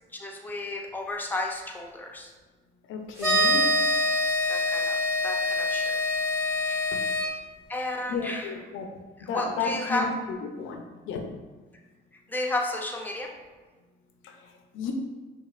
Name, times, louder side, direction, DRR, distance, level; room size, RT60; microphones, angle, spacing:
voice 1, 0.1-2.3 4.5-6.0 6.7-7.2 7.7-8.6 9.2-10.1 12.3-13.3, left 2 dB, 10° left, 1 dB, 0.5 m, -33 dB
voice 2, 2.9-3.7 8.1-8.9 9.3-10.1 10.6-10.8 11.1-11.2 14.7-14.9, left 5 dB, 85° left, 4 dB, 0.5 m, -32 dB
sound 1, 3.2-7.3, left 1 dB, 10° right, 1.2 m, -25 dB
4.9 x 2.4 x 2.4 m, 1.3 s
cardioid pair, 90°, 20 cm